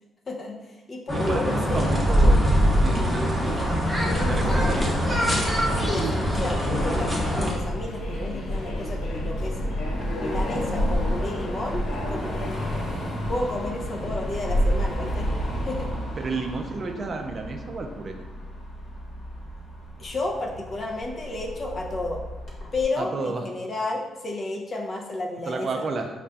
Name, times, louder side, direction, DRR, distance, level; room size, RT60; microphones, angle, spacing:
voice 1, 0.3-1.8 4.4-4.7 5.9-9.7 10.2-12.5 13.3-15.3 15.7-15.9 20.0-22.2 22.7-25.8, left 2 dB, 45° left, 0 dB, 0.7 m, -32 dB
sound 1, 1.1-7.5, equal, ahead, 0.9 m, -23 dB
voice 2, 1.3-2.5 2.8-3.6 4.2-5.0 14.0-14.1 16.2-18.2 23.0-23.4 25.5-26.1, right 3 dB, 45° right, 4 dB, 0.4 m, -31 dB
Subway metro underground, 1.7-16.1, equal, 85° left, 0.7 m, -30 dB
Car passing by / Traffic noise roadway noise / Engine, 4.1-22.8, equal, 60° left, 1.2 m, -34 dB
5.3 x 2.5 x 2.3 m, 1.2 s
cardioid pair, 90°, 0 cm